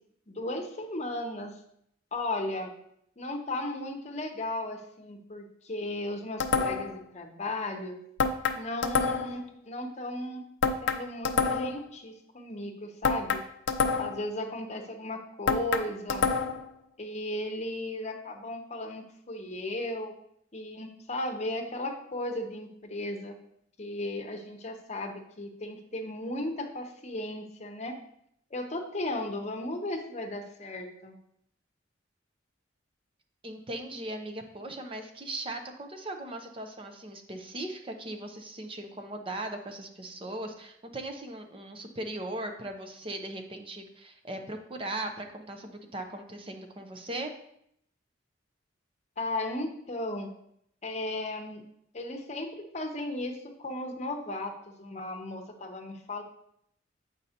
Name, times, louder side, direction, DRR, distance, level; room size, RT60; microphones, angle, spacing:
voice 1, 0.3-1.5 2.1-2.7 3.2-8.0 8.5-10.4 10.8-13.4 14.0-16.2 17.0-20.1 20.5-23.4 23.8-27.9 28.5-31.2 49.2-50.3 50.8-51.6 51.9-56.2, left 1 dB, 35° left, 3 dB, 0.8 m, -35 dB
sound 1, 6.4-7.0 8.2-9.4 10.6-11.8 13.0-14.3 15.5-16.7, left 4 dB, 70° left, 0.5 m, -27 dB
voice 2, 33.4-47.3, right 1 dB, 30° right, 5 dB, 0.6 m, -38 dB
7.7 x 5.3 x 2.9 m, 0.72 s
head